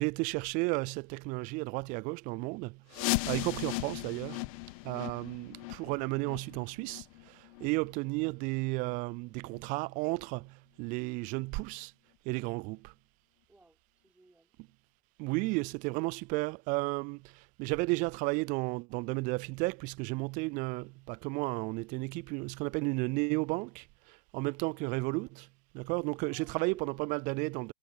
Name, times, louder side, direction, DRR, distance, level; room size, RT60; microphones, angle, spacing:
voice 1, 0.0-4.5 4.8-11.9 12.2-12.9 15.2-25.5 25.7-27.7, right 27 dB, 40° right, 0.4 m, -33 dB
sound 1, 2.9-8.5 8.8-9.0 9.5-9.6 10.2-10.3 10.8-10.9, left 24 dB, 60° left, 1.0 m, -37 dB
voice 2, 13.5-14.5 26.2-26.8, right 2 dB, 5° right, 3.9 m, -62 dB
hypercardioid pair, 100°, 20 cm